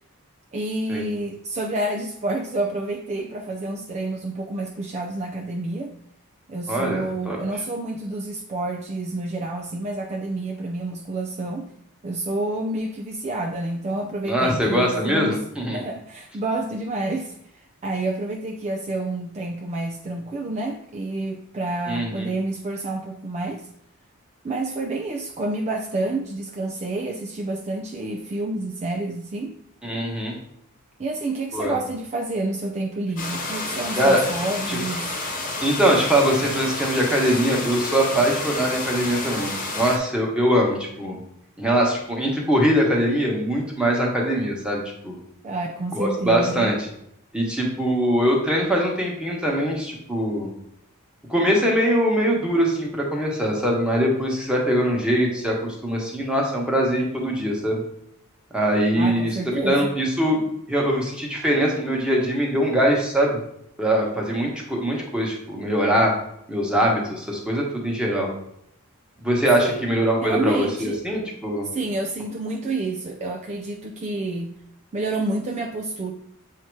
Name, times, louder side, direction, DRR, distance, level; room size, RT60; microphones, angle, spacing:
voice 1, 0.5-6.0 6.5-11.7 12.0-15.4 15.7-23.7 24.4-29.5 31.0-35.2 45.4-46.7 59.0-59.9 69.6-69.8 70.2-71.0 71.7-74.5 74.9-76.1, right 2 dB, 30° right, 3 dB, 0.4 m, -29 dB
voice 2, 6.7-7.4 14.3-15.8 21.9-22.3 29.8-30.3 31.5-31.7 34.0-34.2 34.7-34.8 35.6-41.2 41.6-45.1 45.9-46.9 47.3-50.5 51.3-57.8 58.5-60.4 60.7-63.4 63.8-66.1 66.5-68.3 69.2-71.7, equal, 5° right, -2 dB, 1.2 m, -22 dB
sound 1, 33.2-40.0, left 2 dB, 40° left, 1.1 m, -30 dB
7.3 x 2.8 x 4.6 m, 0.75 s
head